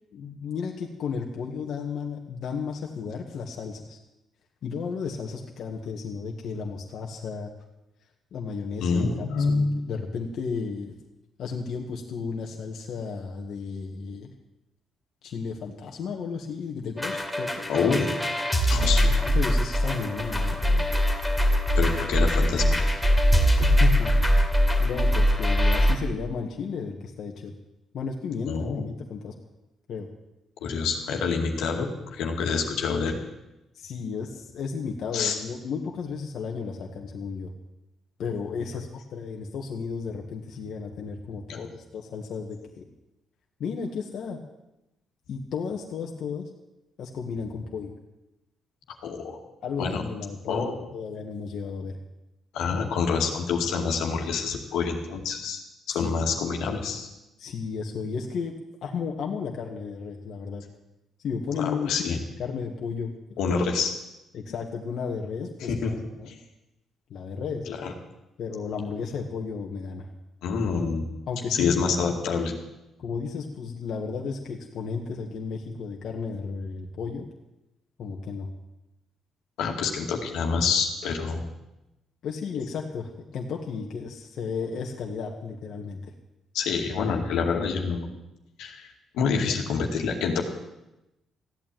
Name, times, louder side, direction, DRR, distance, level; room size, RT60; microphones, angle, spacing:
voice 1, 0.1-4.0 4.6-7.5 8.3-10.9 11.4-14.3 15.2-17.7 18.7-20.9 23.6-24.4 24.8-27.5 27.9-29.3 29.9-30.1 33.7-37.5 38.2-42.9 43.6-44.4 45.3-46.4 47.0-47.9 49.6-52.0 55.9-56.1 57.4-60.6 61.2-63.1 64.3-66.3 67.1-67.7 68.4-70.1 71.3-71.9 73.0-77.3 78.0-78.5 82.2-86.1 89.5-89.6, left 5 dB, 70° left, 1 dB, 1.7 m, -33 dB
voice 2, 8.8-9.7 17.7-18.1 18.7-19.1 21.7-22.9 24.1-24.2 28.5-28.8 30.6-33.2 35.1-35.4 41.5-41.6 49.0-49.4 49.8-50.1 50.4-50.9 52.5-55.6 55.9-57.1 61.5-62.2 63.4-63.9 65.6-66.4 67.7-67.9 70.4-71.1 71.5-72.5 79.6-81.5 86.5-88.1 88.6-88.9 89.1-90.4, left 5 dB, 90° left, 2 dB, 2.3 m, -27 dB
sound 1, 17.0-26.0, equal, 5° left, 2.7 m, -22 dB
15.0 x 8.9 x 9.2 m, 0.94 s
cardioid pair, 90°, 0 cm